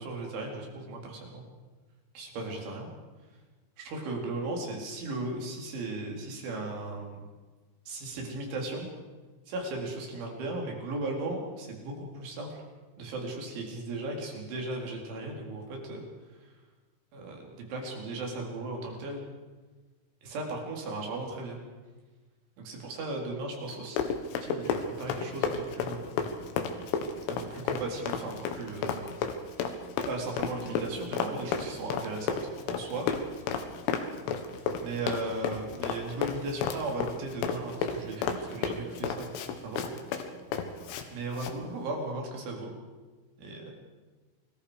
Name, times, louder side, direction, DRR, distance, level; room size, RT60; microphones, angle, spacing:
voice 1, 0.0-1.4 2.1-2.9 3.8-7.3 7.9-8.9 9.5-12.6 13.0-16.0 17.1-19.2 20.2-21.6 22.6-24.0 24.4-26.3 27.3-29.0 30.1-32.4 32.7-33.1 34.8-39.3 39.6-39.8 41.1-42.7 43.4-43.7, right 2 dB, 70° right, 0 dB, 6.4 m, -36 dB
Run, 23.7-41.1 41.3-41.6, left 6 dB, 80° left, 4.0 m, -33 dB
28.5 x 21.0 x 5.2 m, 1.3 s
omnidirectional pair, 5.6 m